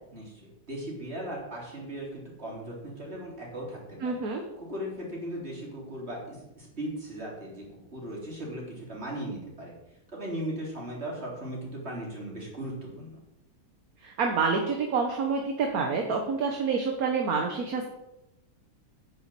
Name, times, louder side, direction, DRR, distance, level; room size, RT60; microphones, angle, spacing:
voice 1, 0.1-4.2 4.6-9.7 10.1-13.2, right 1 dB, 35° right, -3 dB, 4.1 m, -38 dB
voice 2, 4.0-4.4 14.0-17.8, right 5 dB, 55° right, 3 dB, 1.6 m, -27 dB
9.6 x 7.3 x 7.7 m, 0.91 s
omnidirectional pair, 1.9 m